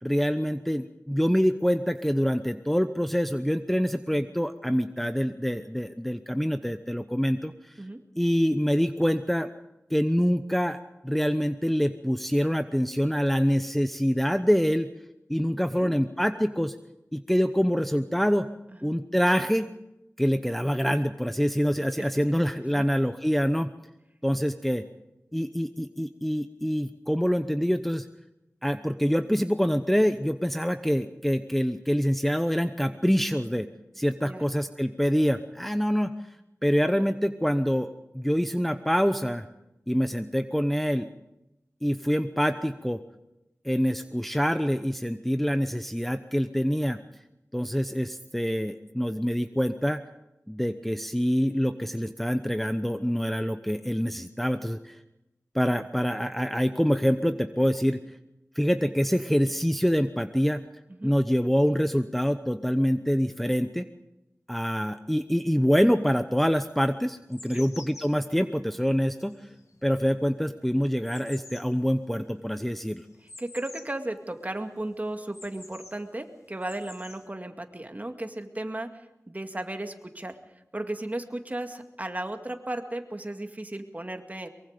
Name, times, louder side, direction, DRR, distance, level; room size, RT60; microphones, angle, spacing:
voice 1, 0.0-7.8 8.2-9.5 9.9-10.8 11.0-14.9 15.3-16.8 17.1-18.5 18.8-19.7 20.2-23.7 24.2-24.8 25.3-28.1 28.6-33.7 34.0-36.1 36.6-39.5 39.9-41.1 41.8-43.0 43.6-47.0 47.5-50.0 50.5-55.0 55.5-58.0 58.5-60.6 61.0-63.9 64.5-69.5 69.8-73.0, equal, 5° left, 8 dB, 0.8 m, -25 dB
sound 1, 67.2-74.1 74.4-74.5 74.8-76.0 76.5-77.3, left 3 dB, 75° left, 1.8 m, -49 dB
voice 2, 73.4-80.4 80.7-84.5, right 1 dB, 30° right, 5 dB, 2.2 m, -35 dB
23.5 x 23.0 x 5.1 m, 0.93 s
wide cardioid pair, 60°, 5 cm